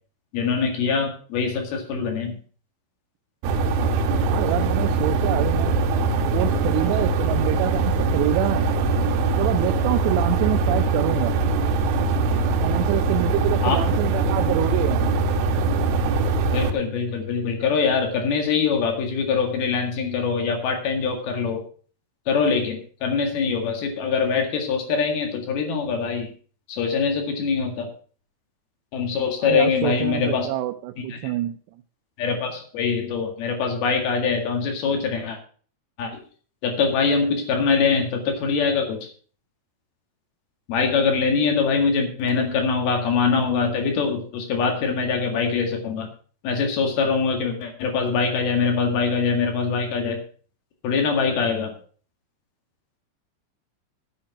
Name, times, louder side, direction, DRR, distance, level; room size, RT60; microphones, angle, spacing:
voice 1, 0.3-2.4 13.6-13.8 16.5-21.6 22.3-26.3 26.7-27.9 28.9-30.5 31.1-31.3 32.2-35.4 36.0-36.2 36.6-39.1 40.7-46.1 46.4-50.2 50.8-51.7, left 5 dB, 65° left, 3 dB, 3.7 m, -23 dB
sound 1, 3.4-16.7, right 3 dB, 75° right, 2.8 m, -22 dB
voice 2, 4.2-5.8 6.3-8.7 9.4-11.4 12.6-15.2 29.4-31.6, right 14 dB, 90° right, 5 dB, 2.9 m, -26 dB
9.8 x 8.8 x 5.9 m, 0.43 s
omnidirectional pair, 4.8 m